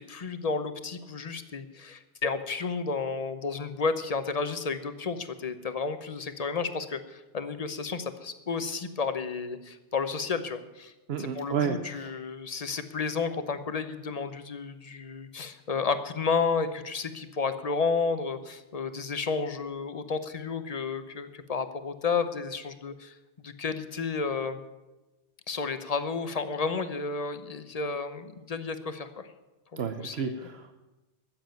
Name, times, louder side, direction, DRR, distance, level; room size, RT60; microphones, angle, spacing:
voice 1, 0.0-10.9 11.2-24.6 25.5-29.3 29.7-30.4, left 5 dB, 35° left, 11 dB, 0.9 m, -32 dB
voice 2, 11.1-12.2 29.8-30.7, right 7 dB, 65° right, 8 dB, 1.0 m, -32 dB
14.5 x 7.5 x 9.1 m, 1.1 s
omnidirectional pair, 1.2 m